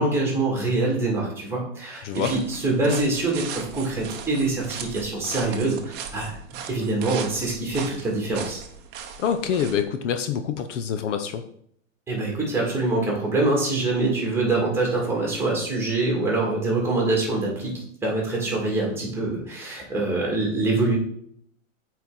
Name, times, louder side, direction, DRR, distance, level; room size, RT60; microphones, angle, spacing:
voice 1, 0.0-6.4 6.7-8.6 12.1-21.0, right 2 dB, 5° right, -2 dB, 2.3 m, -25 dB
sound 1, 2.1-9.8, right 7 dB, 25° right, 0.8 m, -38 dB
voice 2, 9.2-11.4, left 8 dB, 65° left, 8 dB, 0.9 m, -26 dB
8.2 x 4.6 x 4.0 m, 0.67 s
supercardioid pair, 145°, 39 cm